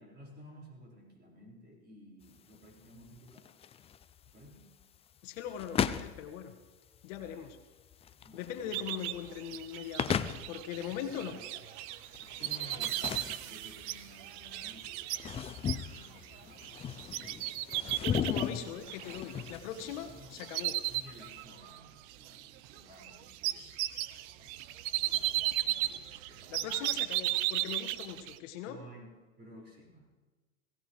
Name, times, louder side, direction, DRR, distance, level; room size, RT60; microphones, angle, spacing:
voice 1, 0.0-3.5 4.3-4.7 7.2-7.5 8.1-8.8 11.1-11.6 12.1-18.5 20.1-26.7 28.7-29.1 29.4-30.1, equal, 25° right, -2 dB, 5.7 m, -55 dB
sound 1, 2.2-21.4, left 8 dB, 15° left, 0.4 m, -38 dB
voice 2, 5.2-6.5 7.0-7.6 8.3-11.3 18.0-20.7 26.5-28.8, left 9 dB, 65° left, 6 dB, 1.7 m, -41 dB
sound 2, 8.7-20.0 20.3-21.8 22.1-28.4, right 16 dB, 55° right, 0.8 m, -36 dB
sound 3, 12.8-15.4, right 9 dB, 90° right, 1.3 m, -48 dB
21.5 x 16.5 x 3.4 m, 1.3 s
hypercardioid pair, 105°, 41 cm